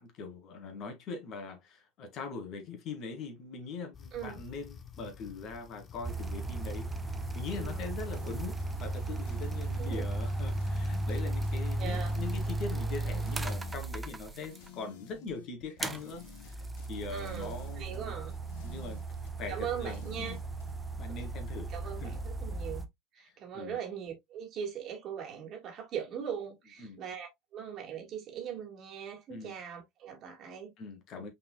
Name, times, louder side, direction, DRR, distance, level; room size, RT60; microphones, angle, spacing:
voice 1, 0.0-16.6 16.9-18.1 18.6-19.0 19.4-20.4 21.0-21.7 22.0-22.2 23.2-23.8 26.8-27.0 29.3-29.5 30.8-31.3, left 4 dB, 50° left, 2.0 m, -42 dB
sound 1, 3.9-9.1, left 7 dB, 35° left, 1.0 m, -50 dB
voice 2, 4.1-4.4 7.6-7.9 8.2-8.3 9.8-10.1 11.8-12.2 17.1-18.3 19.5-20.4 21.7-22.9 23.1-30.7, right 8 dB, 50° right, 1.9 m, -40 dB
sound 2, 6.0-14.7 15.8-22.8, right 2 dB, 15° right, 0.8 m, -35 dB
sound 3, 8.1-20.7, left 5 dB, 75° left, 1.4 m, -51 dB
5.3 x 4.2 x 2.2 m
hypercardioid pair, 80°, 0 cm